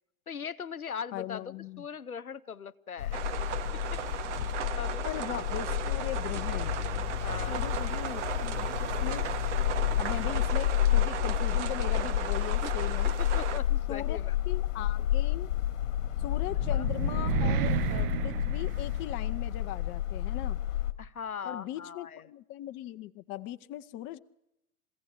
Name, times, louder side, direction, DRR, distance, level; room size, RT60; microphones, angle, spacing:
voice 1, 0.3-3.2 4.7-5.0 7.2-7.7 12.6-12.7 13.2-14.4 16.7-16.9 21.0-22.2, left 7 dB, 85° left, 14 dB, 0.7 m, -40 dB
voice 2, 1.1-1.9 5.0-6.8 7.5-9.3 10.0-13.2 13.9-14.2 14.5-15.5 16.2-20.6 21.4-24.2, left 13 dB, 30° left, 11 dB, 0.7 m, -39 dB
sound 1, 3.0-20.9, left 12 dB, 60° left, 1.4 m, -30 dB
sound 2, 3.1-13.6, right 10 dB, 55° right, 1.4 m, -36 dB
sound 3, 16.0-19.4, right 11 dB, 40° right, 0.7 m, -32 dB
22.5 x 16.0 x 8.6 m, 0.90 s
figure-of-eight pair, 95°, 42 cm